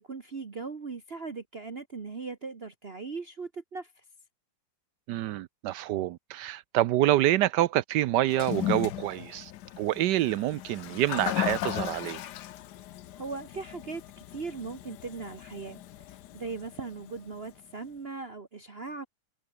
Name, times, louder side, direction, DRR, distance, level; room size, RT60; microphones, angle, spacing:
voice 1, 0.0-3.9 13.2-15.8 16.1-19.1, right 4 dB, 35° right, 1.5 m, -39 dB
voice 2, 5.1-9.5 9.8-12.2, right 14 dB, 75° right, 1.1 m, -27 dB
Toilet flush, 8.2-17.5, left 13 dB, 70° left, 1.2 m, -37 dB
omnidirectional pair, 2.0 m